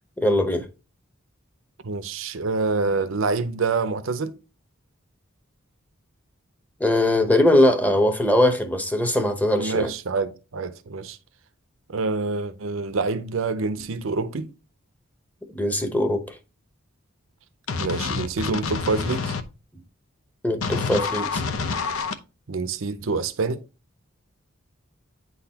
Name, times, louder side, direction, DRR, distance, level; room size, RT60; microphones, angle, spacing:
voice 1, 0.2-0.7 6.8-9.9 15.5-16.4 20.4-21.4, left 1 dB, 10° left, 0.8 m, -21 dB
voice 2, 1.8-4.3 9.6-11.2 11.9-14.5 17.8-19.3 22.5-23.6, right 3 dB, 70° right, 0.6 m, -26 dB
sound 1, 17.7-19.4 20.6-22.1, left 5 dB, 85° left, 0.7 m, -27 dB
9.2 x 3.9 x 2.8 m
head